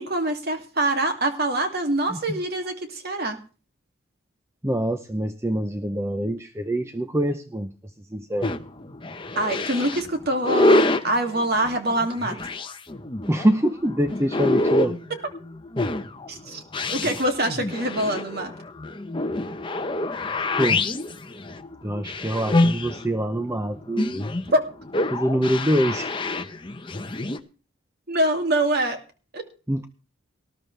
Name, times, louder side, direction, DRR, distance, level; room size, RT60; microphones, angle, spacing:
voice 1, 0.0-3.4 9.4-12.4 15.1-15.2 16.3-16.6 16.9-18.5 24.5-24.6 28.1-29.0 29.3-29.4, right 1 dB, 45° right, 5 dB, 2.5 m, -24 dB
voice 2, 4.6-7.7 8.1-8.5 13.3-15.0 20.6-20.8 21.8-24.3 25.1-26.1 29.7-29.9, equal, 10° right, 8 dB, 0.6 m, -25 dB
sound 1, 8.4-27.4, left 2 dB, 25° left, 0.9 m, -26 dB
19.0 x 12.5 x 3.3 m, 0.35 s
head